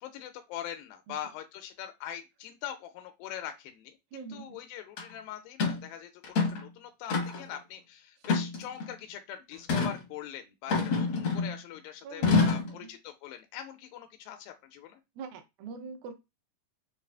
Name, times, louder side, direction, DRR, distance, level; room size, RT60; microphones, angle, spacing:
voice 1, 0.0-15.0, left 10 dB, 90° left, 2.3 m, -42 dB
voice 2, 4.1-4.6 12.0-12.9 15.2-16.1, right 5 dB, 90° right, 2.5 m, -43 dB
sound 1, 5.0-5.1 5.6-5.8 6.2-6.6 7.1-7.5 8.2-8.9 9.7-10.0 10.7-11.6 12.2-12.7, left 4 dB, 70° left, 1.1 m, -27 dB
5.8 x 2.4 x 2.3 m
omnidirectional pair, 4.0 m